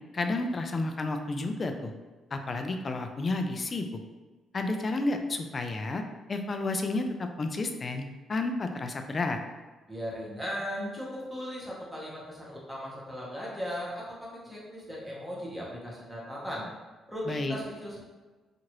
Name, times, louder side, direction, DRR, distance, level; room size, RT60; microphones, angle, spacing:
voice 1, 0.1-1.9 2.3-4.0 4.5-6.0 6.3-9.4 17.3-17.6, left 2 dB, 35° left, 5 dB, 0.3 m, -31 dB
voice 2, 9.9-16.7 17.1-18.1, equal, ahead, -6 dB, 1.0 m, -37 dB
2.8 x 2.5 x 2.9 m, 1.3 s
cardioid pair, 90°, 0 cm